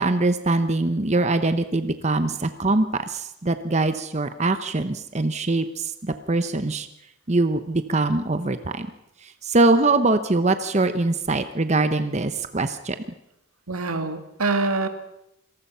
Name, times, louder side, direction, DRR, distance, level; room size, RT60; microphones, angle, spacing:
voice 1, 0.0-6.9 7.3-8.9 9.4-13.0, right 2 dB, 30° right, 10 dB, 0.9 m, -23 dB
voice 2, 13.7-14.9, right 3 dB, 90° right, 7 dB, 2.3 m, -25 dB
27.0 x 18.5 x 5.7 m, 0.83 s
head